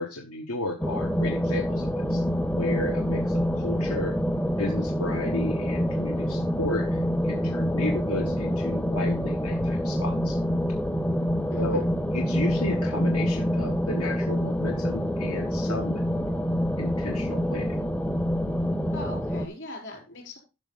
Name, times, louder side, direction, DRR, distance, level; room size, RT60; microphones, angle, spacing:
voice 1, 0.0-2.2 2.6-4.2 4.6-10.4 11.6-11.8 12.1-16.0 16.8-17.8, left 2 dB, 85° left, 3 dB, 1.3 m, -33 dB
sound 1, 0.8-19.5, equal, 5° left, 0.4 m, -26 dB
voice 2, 11.5-11.8 18.9-20.4, left 1 dB, 55° left, 3 dB, 4.3 m, -40 dB
11.5 x 6.4 x 3.9 m, 0.29 s
head